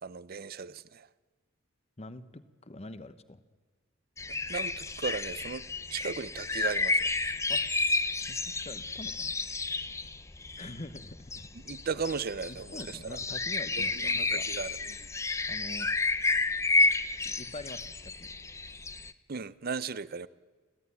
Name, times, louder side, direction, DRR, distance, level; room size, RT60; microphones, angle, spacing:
voice 1, 0.0-1.1 4.5-7.1 11.6-13.2 13.8-15.1 19.3-20.3, right 5 dB, 50° right, 18 dB, 0.6 m, -37 dB
voice 2, 2.0-3.4 7.5-7.6 8.3-9.4 10.6-11.5 12.5-14.5 15.5-15.9 17.2-18.3, left 2 dB, 30° left, 13 dB, 1.0 m, -45 dB
sound 1, 4.2-19.1, left 3 dB, 15° left, 0.6 m, -31 dB
29.5 x 12.0 x 9.7 m, 1.4 s
head